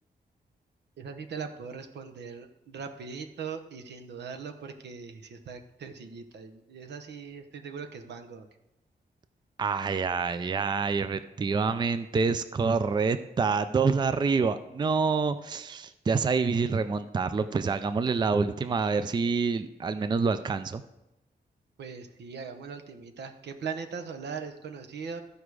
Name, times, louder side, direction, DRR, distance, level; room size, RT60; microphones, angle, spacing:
voice 1, 1.0-8.5 21.8-25.2, right 5 dB, 85° right, 6 dB, 0.9 m, -40 dB
voice 2, 9.6-20.8, right 4 dB, 25° right, 12 dB, 0.4 m, -27 dB
14.0 x 4.9 x 4.8 m, 0.91 s
wide cardioid pair, 130°, 17 cm